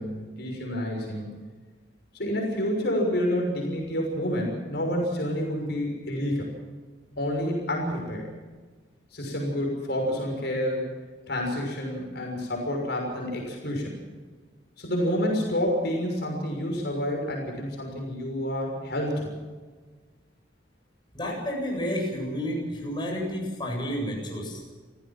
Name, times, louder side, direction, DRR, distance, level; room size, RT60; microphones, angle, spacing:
voice 1, 0.0-1.4 2.1-6.5 7.2-8.3 9.1-10.9 11.3-14.0 14.8-19.3, equal, 65° left, 0 dB, 6.4 m, -29 dB
voice 2, 21.1-24.6, equal, 25° left, -1 dB, 7.9 m, -30 dB
29.5 x 16.0 x 6.1 m, 1.4 s
head